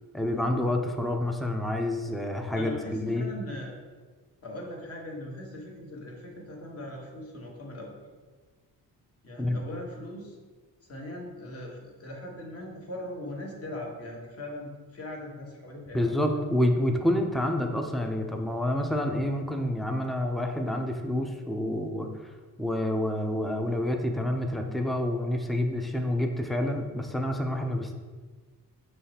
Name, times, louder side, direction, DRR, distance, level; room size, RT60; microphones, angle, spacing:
voice 1, 0.1-3.3 9.4-9.6 15.9-22.1 22.6-27.9, left 1 dB, ahead, 4 dB, 0.4 m, -28 dB
voice 2, 2.5-3.8 4.4-8.0 9.2-10.4 10.9-16.4, left 1 dB, 40° left, -1 dB, 1.1 m, -40 dB
5.5 x 3.1 x 2.8 m, 1.4 s
cardioid pair, 85°, 37 cm